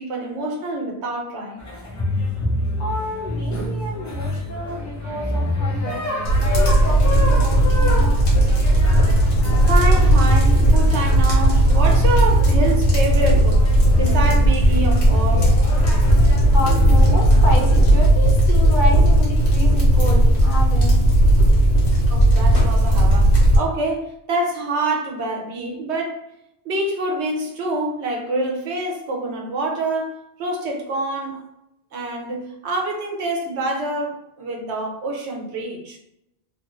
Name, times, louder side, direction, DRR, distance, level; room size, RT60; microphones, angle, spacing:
voice 1, 0.0-1.6 4.0-4.1 9.6-15.6 22.1-26.2 26.6-31.4 31.9-36.0, right 2 dB, 85° right, 1.0 m, -26 dB
sound 1, 1.6-17.8, left 1 dB, 25° left, 0.4 m, -28 dB
voice 2, 2.8-6.0 6.5-8.3 8.6-8.7 16.5-21.1 21.4-22.0, left 1 dB, 50° left, 0.9 m, -29 dB
sound 2, 6.2-23.6, right 1 dB, 80° left, 1.3 m, -15 dB
2.9 x 2.5 x 3.0 m
omnidirectional pair, 1.1 m